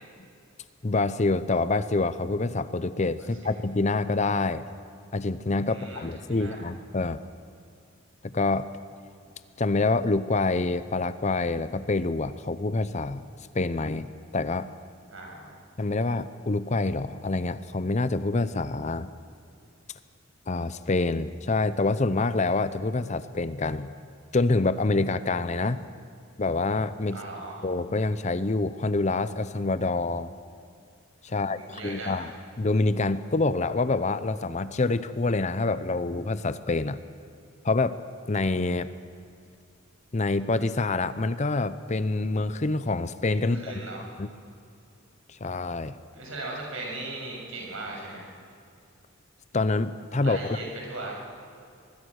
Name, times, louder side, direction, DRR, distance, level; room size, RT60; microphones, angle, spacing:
voice 1, 0.8-4.6 5.1-7.2 8.3-8.7 9.6-13.2 13.5-14.7 15.8-19.1 20.5-23.9 24.3-25.8 26.4-27.2 27.6-30.3 31.2-32.3 32.6-37.0 37.6-38.0 38.3-38.9 40.1-43.6 44.2-44.3 45.4-45.9 49.5-50.6, left 3 dB, 35° left, 13 dB, 0.6 m, -26 dB
voice 2, 3.2-3.5 5.7-6.6 15.1-15.6 27.1-27.6 31.4-32.3 43.4-44.0 46.1-48.3 50.2-51.1, right 2 dB, 70° right, -1 dB, 6.7 m, -38 dB
24.0 x 21.0 x 6.4 m, 2.5 s
head